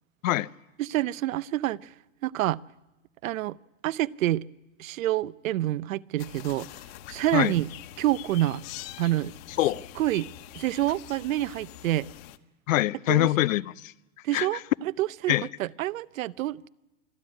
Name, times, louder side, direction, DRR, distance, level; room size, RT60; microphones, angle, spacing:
voice 1, 0.8-1.8 2.2-2.6 3.2-3.6 3.8-4.5 4.8-6.7 7.1-7.7 8.0-8.6 9.0-9.4 10.0-10.3 10.5-12.1 13.1-13.3 14.2-16.7, right 14 dB, 75° right, 0.7 m, -27 dB
sound 1, 6.2-12.4, left 14 dB, 45° left, 1.1 m, -44 dB
voice 2, 12.7-13.9 14.3-14.5 15.3-15.5, left 15 dB, 70° left, 0.7 m, -24 dB
26.0 x 12.5 x 9.8 m
hypercardioid pair, 140°, 41 cm